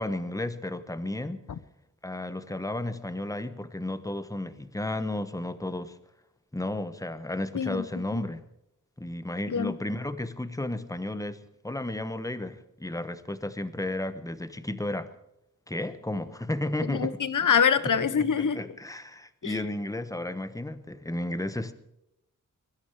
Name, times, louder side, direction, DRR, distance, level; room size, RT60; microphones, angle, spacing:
voice 1, 0.0-1.5 2.0-5.9 6.5-8.4 9.0-11.4 11.6-15.1 15.7-17.2 17.8-21.7, left 1 dB, 10° left, 1.1 m, -33 dB
voice 2, 7.5-7.9 8.1-8.2 9.5-9.8 16.9-18.6 19.4-19.5, left 7 dB, 70° left, 1.0 m, -25 dB
22.0 x 13.0 x 4.9 m
wide cardioid pair, 120°, 32 cm